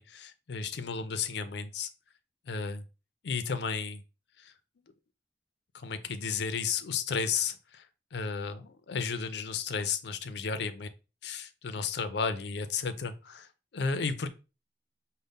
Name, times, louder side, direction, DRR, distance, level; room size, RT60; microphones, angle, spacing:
voice 1, 0.0-1.9 2.5-2.8 3.2-4.0 4.4-4.5 5.7-10.9 11.2-13.5 13.7-14.3, left 5 dB, 60° left, 10 dB, 0.5 m, -33 dB
5.2 x 2.1 x 3.5 m, 0.31 s
head